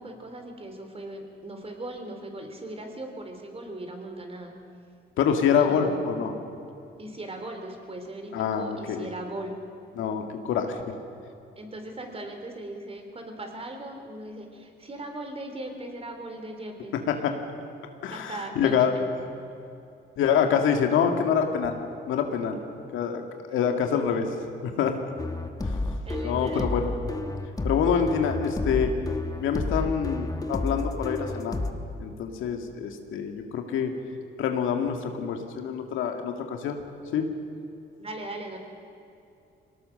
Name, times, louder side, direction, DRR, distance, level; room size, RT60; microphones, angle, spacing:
voice 1, 0.0-4.5 5.6-6.1 7.0-9.6 11.6-16.9 18.1-19.1 23.6-23.8 26.0-26.7 38.0-38.6, right 1 dB, 30° right, 4 dB, 3.7 m, -38 dB
voice 2, 5.2-6.3 8.3-9.1 10.0-10.9 17.1-17.3 18.0-18.9 20.2-21.8 22.1-22.6 22.9-23.2 23.5-24.3 24.6-25.0 26.2-26.9 27.6-28.9 29.4-31.5 32.0-33.9 34.4-36.8 37.1-37.3, left 7 dB, 85° left, 4 dB, 2.0 m, -26 dB
sound 1, 25.2-31.7, left 2 dB, 20° left, 1.5 m, -30 dB
22.5 x 18.5 x 6.7 m, 2.6 s
cardioid pair, 90°, 20 cm